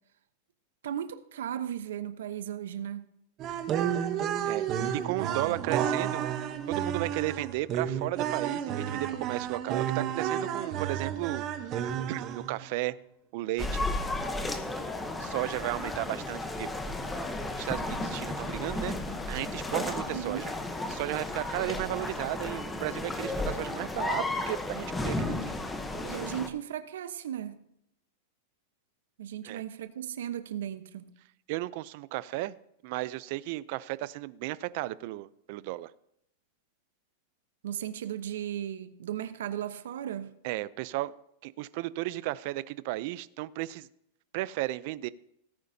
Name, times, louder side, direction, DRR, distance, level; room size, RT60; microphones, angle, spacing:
voice 1, 0.8-3.0 4.7-5.6 20.1-20.5 26.1-27.6 29.2-31.1 37.6-40.4, right 10 dB, 85° right, 0.9 m, -36 dB
sound 1, 3.4-12.6, right 9 dB, 30° right, 1.0 m, -31 dB
voice 2, 5.0-6.2 6.7-11.7 12.1-12.9 13.3-13.9 15.2-16.9 17.6-19.0 19.3-20.5 20.9-25.4 25.9-26.2 29.4-29.6 31.5-32.5 32.8-35.9 40.4-41.1 41.4-43.9 44.3-45.1, right 17 dB, 50° right, 0.5 m, -34 dB
sound 2, 13.6-26.5, left 2 dB, 10° left, 0.9 m, -34 dB
17.5 x 9.5 x 2.8 m
supercardioid pair, 155°, 0 cm